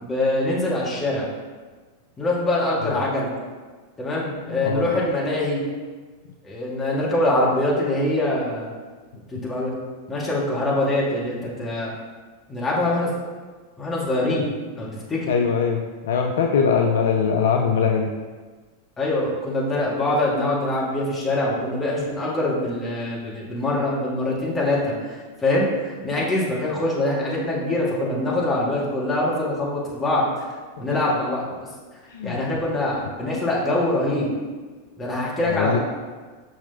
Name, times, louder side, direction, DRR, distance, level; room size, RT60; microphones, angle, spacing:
voice 1, 0.0-1.3 2.2-3.3 4.0-5.6 6.4-8.7 9.3-9.7 10.1-11.9 12.5-13.1 13.8-14.5 14.7-15.3 19.0-30.3 30.8-31.5 32.2-34.3 35.0-35.8, left 1 dB, 15° left, -5 dB, 1.9 m, -24 dB
voice 2, 4.5-4.9 15.3-18.1 30.9-31.0 32.1-32.4 35.4-35.8, left 6 dB, 60° left, 2 dB, 0.4 m, -22 dB
6.5 x 5.7 x 2.9 m, 1.4 s
figure-of-eight pair, 90°, 0 cm